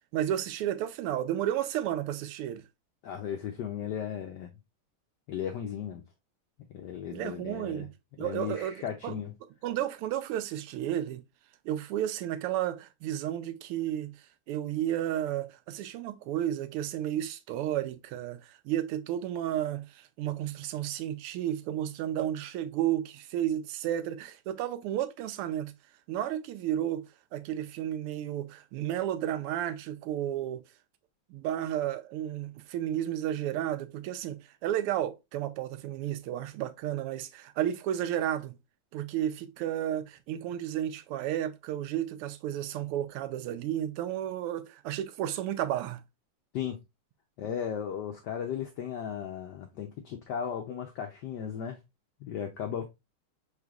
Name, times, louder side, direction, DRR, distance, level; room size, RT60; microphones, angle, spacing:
voice 1, 0.1-2.6 7.1-7.9 8.2-8.7 9.0-9.2 9.6-11.2 11.6-14.2 14.5-25.7 26.1-30.6 31.3-38.5 38.9-46.0, right 11 dB, 90° right, 1.5 m, -32 dB
voice 2, 3.0-4.5 5.3-6.0 6.7-7.9 8.2-9.3 46.5-46.8 47.4-51.8 52.2-52.8, left 8 dB, 80° left, 0.9 m, -36 dB
4.9 x 4.0 x 2.3 m
omnidirectional pair, 2.4 m